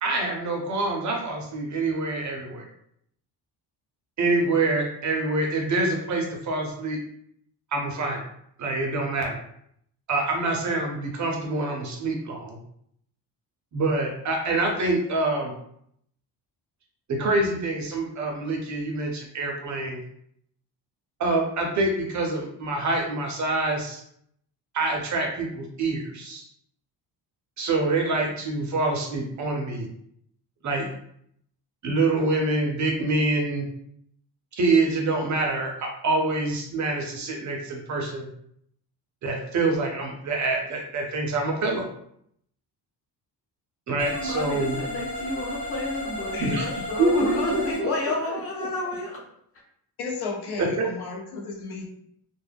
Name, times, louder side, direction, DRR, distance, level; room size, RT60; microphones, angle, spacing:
voice 1, 0.0-2.7 4.2-7.0 7.7-8.2 8.6-9.4 10.1-12.6 13.7-15.5 17.1-20.0 21.2-24.0 24.7-26.4 27.6-29.9 30.6-30.9 31.8-33.7 34.5-38.3 39.2-41.9 43.9-44.8 46.4-46.6 47.0-47.1 47.5-47.9 50.6-50.9, right 2 dB, 45° right, 1 dB, 0.5 m, -26 dB
sound 1, 44.0-47.8, left 1 dB, 20° left, 1.1 m, -34 dB
voice 2, 44.1-49.2, left 1 dB, 35° left, -2 dB, 0.7 m, -30 dB
voice 3, 46.3-46.6 50.0-51.9, left 4 dB, 65° left, -1 dB, 0.7 m, -33 dB
2.2 x 2.0 x 3.3 m, 0.70 s
cardioid pair, 170°, 41 cm